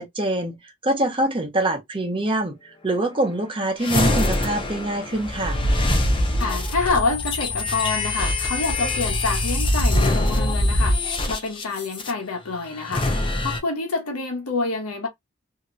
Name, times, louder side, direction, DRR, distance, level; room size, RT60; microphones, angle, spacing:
voice 1, 0.0-2.6 2.8-5.6, right 1 dB, 25° right, 0.8 m, -24 dB
sound 1, 3.8-12.1 12.8-13.6, left 1 dB, 25° left, 0.6 m, -23 dB
voice 2, 6.4-11.0 11.3-13.1 13.4-15.1, left 4 dB, 90° left, 1.1 m, -27 dB
3.0 x 2.8 x 2.5 m
head